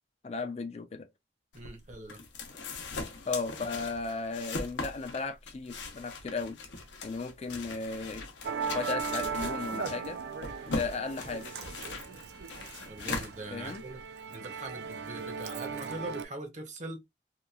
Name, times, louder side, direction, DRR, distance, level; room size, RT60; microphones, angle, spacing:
voice 1, 0.2-1.1 3.3-6.6 7.0-8.2 8.7-10.2 10.7-11.5 13.5-13.8, left 4 dB, 35° left, 0.4 m, -35 dB
sound 1, 1.5-14.0, left 3 dB, 85° left, 0.7 m, -40 dB
voice 2, 1.5-2.2 12.9-14.0 14.3-17.0, right 2 dB, 40° right, 0.7 m, -42 dB
Musical instrument, 8.4-16.2, right 5 dB, 65° right, 0.4 m, -38 dB
2.9 x 2.3 x 2.2 m
head